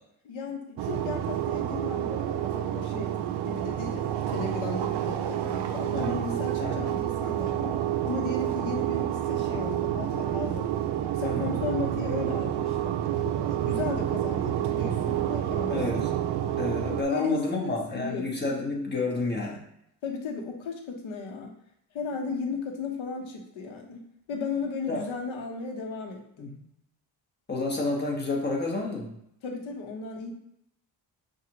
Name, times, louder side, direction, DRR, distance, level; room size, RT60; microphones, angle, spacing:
voice 1, 0.2-3.2 3.4-16.1 17.1-18.4 20.0-21.6 21.9-26.5 29.4-30.3, left 4 dB, 70° left, 2 dB, 1.1 m, -35 dB
sound 1, 0.8-17.0, right 11 dB, 55° right, 0.5 m, -29 dB
voice 2, 15.7-16.1 16.6-19.6 24.9-25.0 26.4-26.6 27.5-29.1, left 2 dB, 20° left, -2 dB, 1.2 m, -30 dB
5.9 x 2.5 x 3.0 m, 0.76 s
cardioid pair, 90°, 49 cm